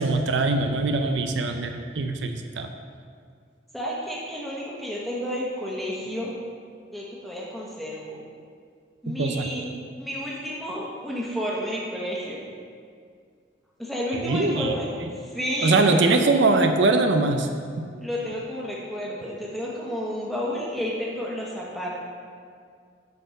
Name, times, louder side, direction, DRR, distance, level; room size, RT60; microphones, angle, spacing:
voice 1, 0.0-2.7 9.1-9.5 14.1-14.7 15.6-17.5, right 3 dB, 80° right, 5 dB, 0.6 m, -22 dB
voice 2, 3.7-6.3 6.9-8.2 9.0-9.6 10.0-12.4 13.8-14.9 15.2-16.2 18.0-22.0, equal, ahead, -5 dB, 1.3 m, -31 dB
8.5 x 4.4 x 6.5 m, 2.1 s
head